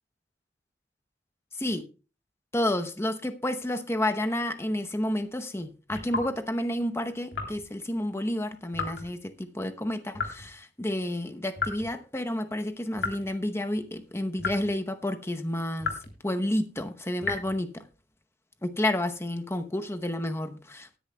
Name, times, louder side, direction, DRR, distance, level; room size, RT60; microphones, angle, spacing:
voice 1, 2.5-15.9 16.2-17.8 18.6-21.0, left 1 dB, 15° left, 0.8 m, -30 dB
sound 1, 5.9-6.4 7.3-7.7 8.7-9.1 10.1-10.5 11.6-12.0 13.0-13.3 14.4-14.8 15.8-16.2 17.2-17.6, left 4 dB, 75° left, 3.2 m, -33 dB
20.0 x 10.0 x 2.2 m
head